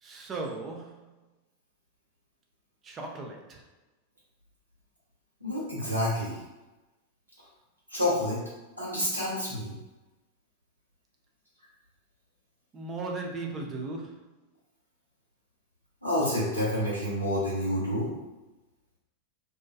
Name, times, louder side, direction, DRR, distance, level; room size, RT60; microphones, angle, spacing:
voice 1, 0.0-1.1 2.8-3.6 12.7-14.2, right 3 dB, 25° right, 1 dB, 0.4 m, -37 dB
voice 2, 5.4-6.4 7.9-8.4 8.8-9.8 16.0-18.1, left 1 dB, 85° right, -7 dB, 0.9 m, -28 dB
2.3 x 2.2 x 2.3 m, 1.1 s
figure-of-eight pair, 90°, 0 cm